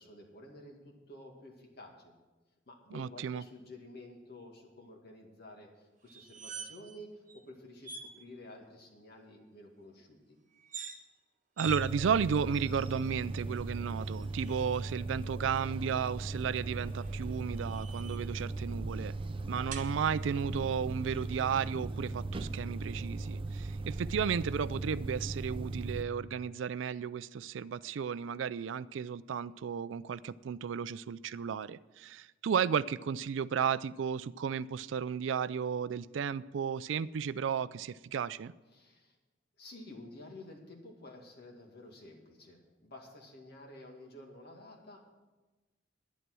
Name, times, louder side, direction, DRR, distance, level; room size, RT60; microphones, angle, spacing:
voice 1, 0.0-2.1 2.7-10.4 38.7-39.2 39.6-45.1, left 1 dB, 60° left, 2 dB, 2.2 m, -51 dB
voice 2, 2.9-3.4 11.6-19.1 19.5-38.5, right 7 dB, 80° right, 18 dB, 0.4 m, -33 dB
sound 1, 6.1-7.0 7.3-7.4 7.8-8.1 10.6-11.0 11.6-11.8 12.5-13.1 14.1-14.9 16.8-18.4 19.7-19.9, right 5 dB, 45° right, 1.2 m, -46 dB
sound 2, 11.6-26.0, right 2 dB, 30° right, 0.5 m, -38 dB
11.0 x 10.5 x 6.2 m, 1.2 s
head